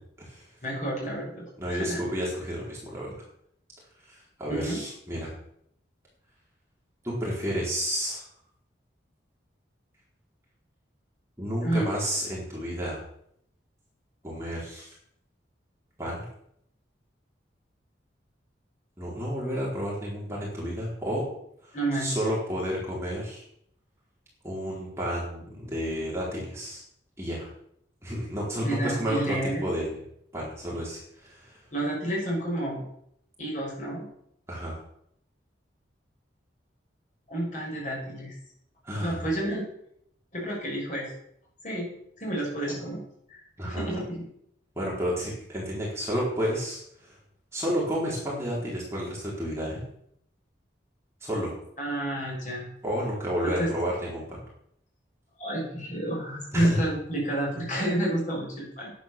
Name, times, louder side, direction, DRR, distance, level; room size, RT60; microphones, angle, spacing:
voice 1, 0.6-2.0 4.5-4.8 11.6-11.9 21.7-22.2 28.6-29.7 31.7-32.9 33.4-34.1 37.3-38.3 39.0-39.7 40.3-41.1 41.6-43.0 43.3-44.1 51.8-52.6 53.4-53.7 55.4-58.9, right 1 dB, 40° left, -3 dB, 6.5 m, -30 dB
voice 2, 1.6-3.2 4.0-5.3 7.0-8.2 11.4-13.0 14.2-14.9 16.0-16.2 19.0-21.2 21.6-23.4 24.4-26.8 27.2-27.5 28.0-29.4 29.6-30.0 30.3-31.6 34.5-34.8 38.8-39.3 43.6-43.8 44.8-47.1 47.5-49.8 51.2-51.5 52.8-54.4 56.5-56.9, equal, 15° right, -5 dB, 4.4 m, -31 dB
11.0 x 9.2 x 6.9 m, 0.72 s
head